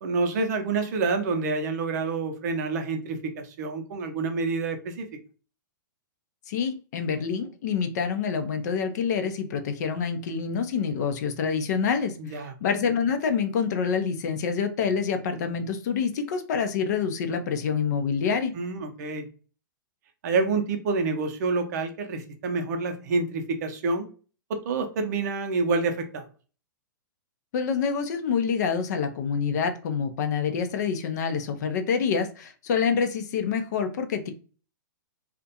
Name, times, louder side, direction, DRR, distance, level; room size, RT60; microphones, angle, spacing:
voice 1, 0.0-5.1 12.2-12.5 18.5-19.2 20.2-24.1 24.6-26.2, right 3 dB, 55° right, 6 dB, 0.5 m, -27 dB
voice 2, 6.5-18.5 27.5-34.3, left 6 dB, 55° left, 7 dB, 0.4 m, -27 dB
2.4 x 2.1 x 2.7 m, 0.37 s
hypercardioid pair, 115°, 11 cm